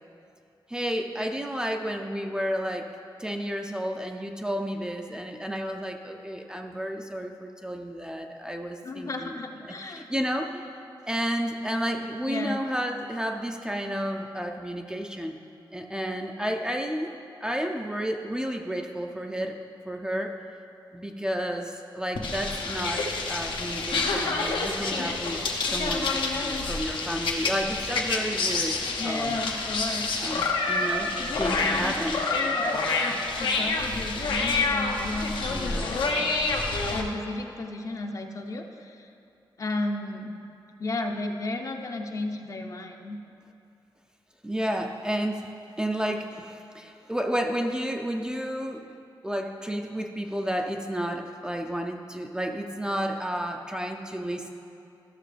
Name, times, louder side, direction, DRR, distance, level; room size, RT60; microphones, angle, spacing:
voice 1, 0.7-2.9 3.2-9.4 9.6-10.6 11.1-15.4 15.7-17.1 17.4-19.5 19.9-20.3 20.9-28.8 29.0-29.4 30.2-32.2 35.5-35.9 44.4-45.5 45.8-48.8 49.2-54.5, equal, 10° right, 3 dB, 0.5 m, -31 dB
voice 2, 8.8-10.1 12.2-12.6 29.0-30.1 31.2-35.4 35.9-36.3 36.9-39.1 39.6-40.4 40.8-43.2, left 2 dB, 40° left, 4 dB, 0.6 m, -33 dB
sound 1, 22.2-37.0, left 3 dB, 80° left, 0.9 m, -28 dB
13.5 x 6.5 x 3.3 m, 2.6 s
wide cardioid pair, 115°, 8 cm